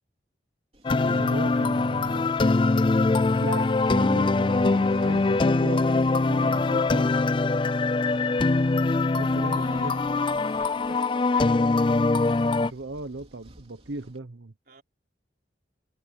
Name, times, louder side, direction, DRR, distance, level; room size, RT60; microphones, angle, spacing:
sound 1, 0.7-14.2, right 1 dB, 30° right, 3.3 m, -58 dB
sound 2, 0.8-12.7, left 3 dB, 25° left, 0.3 m, -23 dB
voice 1, 1.0-2.3 3.4-5.9 6.3-7.3 9.2-9.9 10.9-11.0 12.5-14.5, right 2 dB, 85° right, 1.0 m, -37 dB
voice 2, 9.4-11.9 14.7-14.8, right 3 dB, 50° right, 4.2 m, -49 dB
head